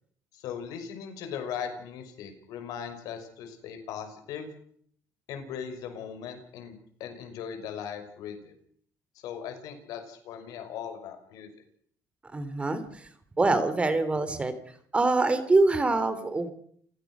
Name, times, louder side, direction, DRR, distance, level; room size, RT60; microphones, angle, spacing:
voice 1, 0.3-4.5 5.3-8.5 9.2-11.5, left 7 dB, 85° left, 6 dB, 5.8 m, -39 dB
voice 2, 12.3-13.1 13.4-14.5 14.9-16.5, right 2 dB, 20° right, 11 dB, 3.2 m, -24 dB
29.5 x 16.0 x 6.3 m, 0.62 s
cardioid pair, 130°, 6 cm